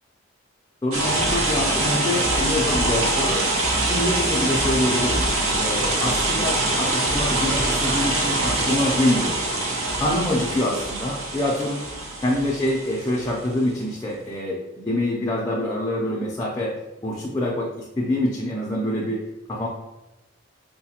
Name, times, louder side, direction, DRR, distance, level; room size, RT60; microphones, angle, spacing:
voice 1, 0.8-3.4 3.9-5.3 5.6-9.4 10.0-11.8 12.2-16.7 17.0-19.2 19.5-19.7, left 1 dB, 15° left, -4 dB, 0.4 m, -25 dB
sound 1, 0.9-13.5, right 2 dB, 85° right, 0.8 m, -24 dB
4.7 x 2.1 x 2.8 m, 1.0 s
head